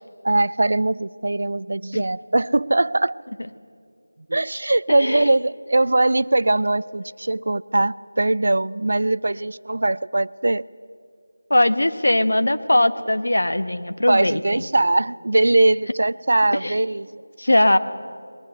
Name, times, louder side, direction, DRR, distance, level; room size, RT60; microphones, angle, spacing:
voice 1, 0.2-3.1 4.3-10.6 14.1-17.2, right 2 dB, 60° right, 19 dB, 0.5 m, -21 dB
voice 2, 5.0-5.3 11.5-14.6 16.6-16.7 17.4-17.8, left 1 dB, 90° left, 10 dB, 1.5 m, -20 dB
21.0 x 21.0 x 8.0 m, 2.2 s
figure-of-eight pair, 175°, 0 cm